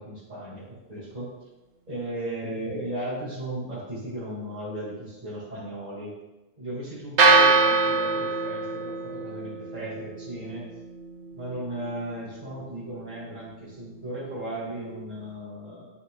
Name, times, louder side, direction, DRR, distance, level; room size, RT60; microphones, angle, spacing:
voice 1, 0.0-1.4 1.9-6.2 6.6-10.7 11.3-15.9, right 1 dB, 45° right, -11 dB, 2.8 m, -36 dB
sound 1, 7.2-15.3, right 3 dB, 85° right, 1.2 m, -26 dB
11.0 x 4.6 x 2.5 m, 1.0 s
omnidirectional pair, 1.1 m